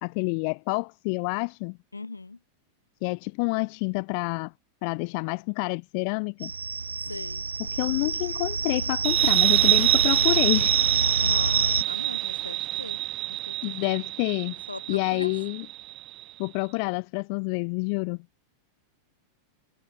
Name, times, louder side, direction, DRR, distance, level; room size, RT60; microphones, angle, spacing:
voice 1, 0.0-1.8 3.0-4.5 4.8-6.5 7.7-10.8 13.6-14.6 14.9-15.6 16.4-18.2, left 38 dB, 45° left, 1.0 m, -28 dB
voice 2, 1.9-2.4 7.0-7.4 11.2-13.0 13.3-14.0 14.7-15.4, left 3 dB, 80° left, 7.4 m, -40 dB
sound 1, 6.4-11.8, right 4 dB, 75° right, 1.1 m, -27 dB
sound 2, 9.0-16.2, right 17 dB, 35° right, 0.8 m, -26 dB
figure-of-eight pair, 90°, 0 cm